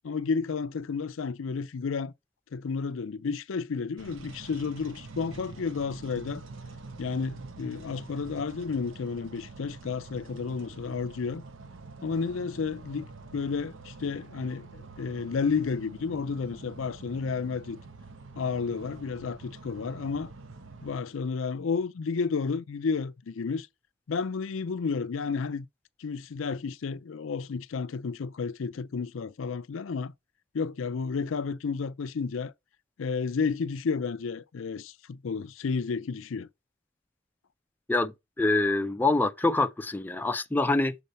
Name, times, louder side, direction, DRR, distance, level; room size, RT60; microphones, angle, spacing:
voice 1, 0.0-2.1 2.5-6.4 7.0-11.4 12.0-17.8 18.4-20.3 20.8-23.7 24.1-25.7 26.0-30.1 30.5-32.5 33.0-36.5, left 5 dB, 75° left, 0.5 m, -31 dB
sound 1, 4.0-21.0, right 3 dB, 70° right, 0.9 m, -46 dB
voice 2, 37.9-41.0, left 2 dB, 10° left, 0.4 m, -25 dB
6.8 x 4.1 x 4.1 m
head